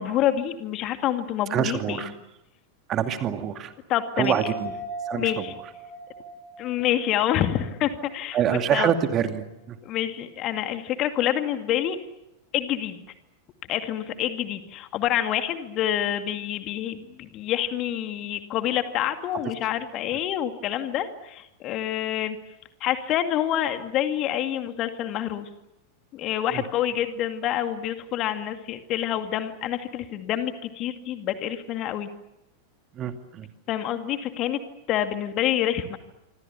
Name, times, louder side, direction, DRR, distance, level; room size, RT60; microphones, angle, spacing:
voice 1, 0.0-2.1 3.9-4.3 5.2-5.5 6.6-8.4 8.7-8.9 9.8-12.0 12.5-13.0 13.7-22.4 22.8-25.5 26.1-32.1 33.7-34.6 34.9-36.0, left 11 dB, 35° left, 8 dB, 2.2 m, -27 dB
voice 2, 1.5-2.1 2.9-3.7 4.2-4.7 5.1-5.5 8.3-9.8 26.5-26.6 32.9-33.5, right 9 dB, 30° right, 7 dB, 2.4 m, -26 dB
sound 1, 4.2-7.9 8.3-8.4, right 1 dB, 75° left, 5.8 m, -38 dB
27.0 x 25.0 x 7.1 m, 0.92 s
figure-of-eight pair, 90°, 0 cm